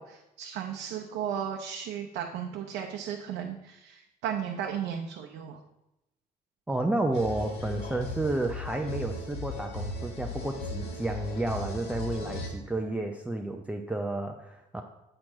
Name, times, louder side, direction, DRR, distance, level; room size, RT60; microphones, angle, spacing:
voice 1, 0.0-5.6, right 8 dB, 90° right, 2 dB, 0.7 m, -35 dB
voice 2, 6.7-14.8, right 2 dB, 5° right, 2 dB, 0.5 m, -31 dB
sound 1, 7.1-12.5, left 2 dB, 75° left, 1.7 m, -37 dB
7.7 x 4.4 x 4.7 m, 0.92 s
cardioid pair, 110°, 17 cm